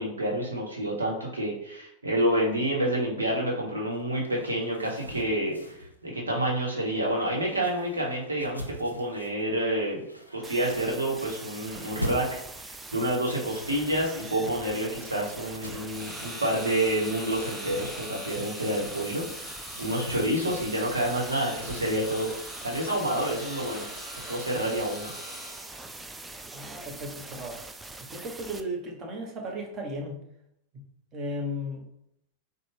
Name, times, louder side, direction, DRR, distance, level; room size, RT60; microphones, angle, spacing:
voice 1, 0.0-10.0 10.3-19.2 19.8-22.3 22.6-23.9 24.3-25.1, right 1 dB, 75° right, -2 dB, 1.0 m, -28 dB
sound 1, 3.9-21.9, left 1 dB, 90° left, 0.5 m, -44 dB
sound 2, 10.4-28.6, right 2 dB, 10° right, 0.3 m, -43 dB
sound 3, 15.8-26.0, equal, 10° left, 1.2 m, -42 dB
voice 2, 26.5-27.6 28.0-30.2 30.7-30.8 31.1-31.9, equal, 30° right, -1 dB, 1.0 m, -35 dB
4.2 x 2.3 x 3.2 m, 0.76 s
figure-of-eight pair, 90°, 0 cm